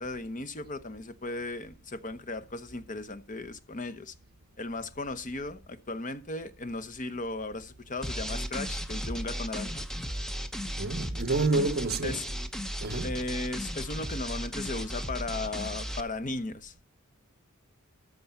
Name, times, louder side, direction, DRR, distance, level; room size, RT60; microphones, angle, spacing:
voice 1, 0.0-4.1 4.6-9.9 12.0-12.2 13.0-16.8, left 2 dB, 35° left, 0.9 m, -36 dB
sound 1, 8.0-16.0, equal, ahead, 0.8 m, -35 dB
voice 2, 10.8-12.5 12.8-13.2, right 3 dB, 45° right, 1.2 m, -29 dB
13.5 x 5.4 x 7.1 m
head